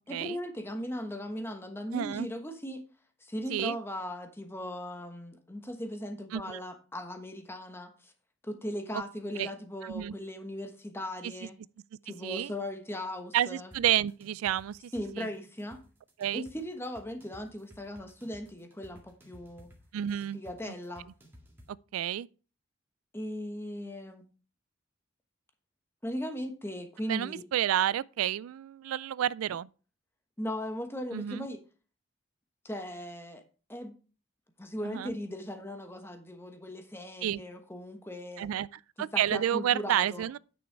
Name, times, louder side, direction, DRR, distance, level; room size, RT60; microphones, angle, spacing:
voice 1, 0.1-2.8 3.2-8.1 8.4-11.6 12.0-13.7 14.9-15.8 16.3-19.7 20.3-21.1 23.1-24.2 26.0-27.4 30.4-31.6 32.6-33.4 33.7-34.0 34.6-38.5 39.1-40.2, equal, 10° left, 1.1 m, -38 dB
voice 2, 1.9-2.3 3.5-3.8 6.3-6.6 8.9-9.0 9.4-9.5 9.8-10.2 12.2-12.5 13.3-15.3 16.2-16.4 19.9-20.4 21.9-22.3 27.1-29.7 31.1-31.5 34.8-35.1 37.2-37.4 38.4-38.7 39.0-40.4, right 11 dB, 85° right, 0.3 m, -30 dB
sound 1, 13.7-21.7, equal, 10° right, 1.8 m, -56 dB
9.3 x 6.3 x 4.6 m
head